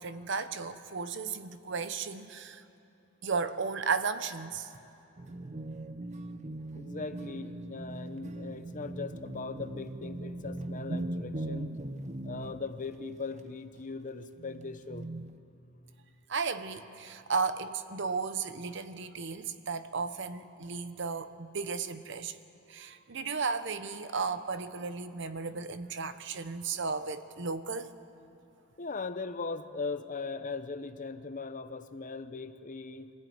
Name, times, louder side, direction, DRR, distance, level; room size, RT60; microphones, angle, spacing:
voice 1, 0.0-2.6 3.2-4.7 16.3-22.4 22.7-27.9, right 5 dB, 65° right, 11 dB, 0.9 m, -34 dB
sound 1, 5.2-12.8 13.8-13.9 14.4-15.4, right 1 dB, 35° right, 0.8 m, -40 dB
voice 2, 6.7-11.8 12.2-15.1 28.8-33.1, left 4 dB, 40° left, 10 dB, 0.9 m, -39 dB
25.0 x 15.5 x 9.5 m, 2.6 s
head